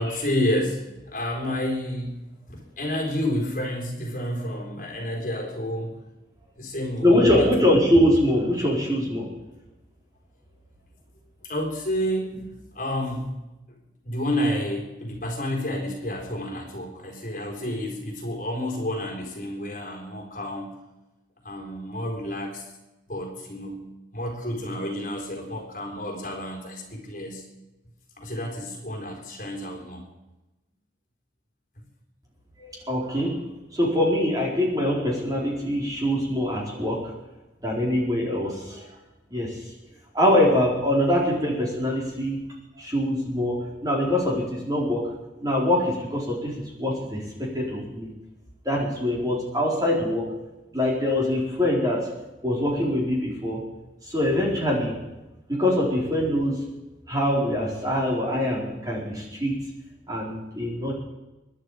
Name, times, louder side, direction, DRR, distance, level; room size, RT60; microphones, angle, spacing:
voice 1, 0.0-2.2 2.5-6.0 6.6-7.5 11.4-12.5 12.7-13.3 14.0-20.8 21.4-22.6 23.1-23.8 24.1-27.4 28.2-30.0 31.8-31.9, left 1 dB, 45° left, 1 dB, 4.1 m, -30 dB
voice 2, 7.0-9.3 32.6-33.4 33.7-37.1 37.6-38.8 39.3-39.6 40.1-42.4 42.8-45.1 45.4-48.1 48.6-50.3 50.7-52.1 52.4-53.6 54.1-55.0 55.5-56.7 57.1-59.6 60.1-60.9, left 1 dB, 20° right, -3 dB, 4.4 m, -23 dB
24.5 x 11.5 x 5.0 m, 1.0 s
head